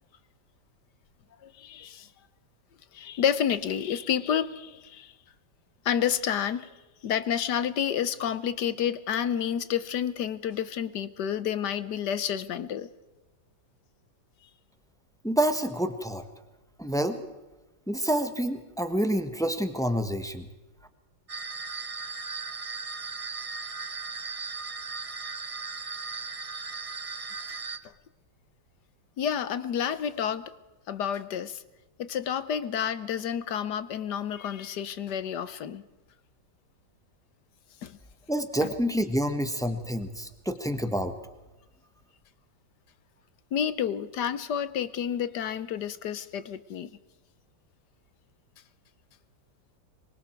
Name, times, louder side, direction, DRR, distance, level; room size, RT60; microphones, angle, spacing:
voice 1, 1.4-2.1 2.9-5.1 5.8-6.7 7.0-12.9 29.2-30.5 30.9-31.6 32.0-35.8 37.8-38.0 38.6-38.8 43.5-46.9, left 9 dB, 65° left, 1.4 m, -30 dB
voice 2, 15.2-16.2 16.8-17.2 17.9-20.5 38.3-41.1, equal, ahead, 1.1 m, -28 dB
sound 1, 21.3-27.8, right 4 dB, 45° right, 0.4 m, -37 dB
25.5 x 23.0 x 4.5 m
omnidirectional pair, 2.0 m